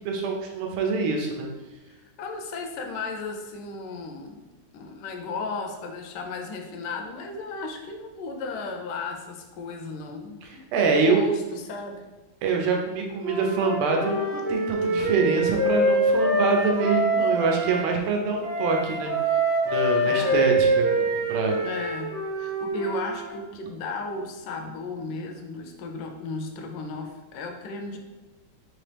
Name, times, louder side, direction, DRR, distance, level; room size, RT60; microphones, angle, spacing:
voice 1, 0.0-1.5 10.5-11.2 12.4-19.4 19.7-20.9 21.3-21.5, right 4 dB, 85° right, 1 dB, 1.5 m, -25 dB
voice 2, 2.2-4.4 4.7-12.0 20.0-20.6 21.6-28.0, left 2 dB, 75° left, 4 dB, 1.0 m, -35 dB
Wind instrument woodwind instrument, 13.2-17.8 18.4-23.3, right 1 dB, 70° right, 1.5 m, -25 dB
4.1 x 3.0 x 3.3 m, 1.1 s
omnidirectional pair, 2.3 m